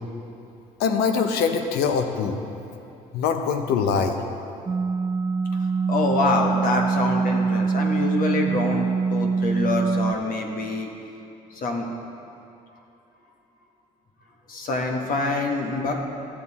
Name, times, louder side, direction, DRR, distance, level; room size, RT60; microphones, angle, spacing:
voice 1, 0.8-2.4 3.1-4.2, left 6 dB, 80° left, 6 dB, 0.8 m, -23 dB
sound 1, 4.7-10.1, right 5 dB, 25° right, 0.4 m, -24 dB
voice 2, 5.9-10.9 11.6-11.8 14.5-15.9, left 3 dB, 60° left, 2 dB, 1.4 m, -25 dB
13.0 x 7.2 x 4.2 m, 2.7 s
supercardioid pair, 70°, 16 cm